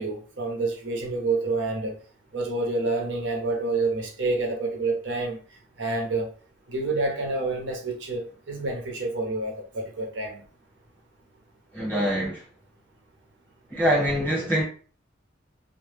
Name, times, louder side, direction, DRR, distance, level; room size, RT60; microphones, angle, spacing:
voice 1, 0.0-2.0 2.3-5.4 5.8-6.3 6.7-10.4, right 3 dB, 75° right, 0.7 m, -28 dB
voice 2, 11.7-12.4 13.7-14.6, equal, 10° right, 0.8 m, -24 dB
2.1 x 2.0 x 3.2 m
head